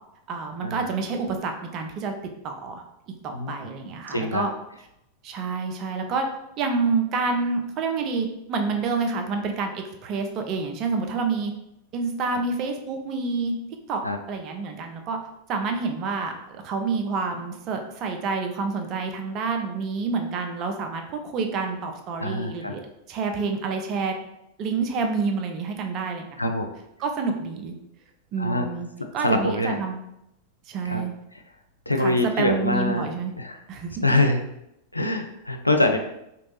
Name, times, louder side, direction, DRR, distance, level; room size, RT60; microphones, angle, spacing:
voice 1, 0.3-2.1 2.4-4.5 5.2-6.3 6.6-11.5 11.9-13.5 13.9-14.0 14.3-15.2 15.5-22.8 23.1-24.2 24.6-26.3 27.0-27.8 28.3-28.9 29.1-30.0 30.7-31.1 32.0-33.3 33.7-34.0, right 4 dB, 35° right, 4 dB, 0.5 m, -28 dB
voice 2, 3.3-3.7 4.1-4.4 12.3-12.4 14.0-14.2 22.2-22.7 26.4-26.7 28.4-28.7 29.2-29.8 30.8-31.0 31.3-31.4 31.9-33.1 33.4-33.6 34.0-34.4 34.9-36.0, left 1 dB, 85° left, 5 dB, 0.3 m, -24 dB
3.0 x 2.6 x 3.0 m, 0.83 s
figure-of-eight pair, 90°, 0 cm